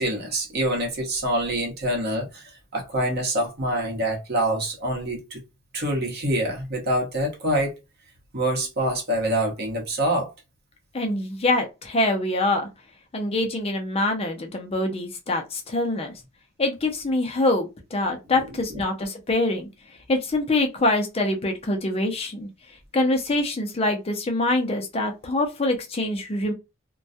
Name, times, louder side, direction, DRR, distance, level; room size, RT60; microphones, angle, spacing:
voice 1, 0.0-5.4 5.7-7.8 8.3-10.3, right 1 dB, 50° right, 0.9 m, -25 dB
voice 2, 10.9-12.7 13.1-16.1 16.6-19.7 20.1-26.5, left 2 dB, 30° left, 0.5 m, -25 dB
2.2 x 2.1 x 2.6 m
head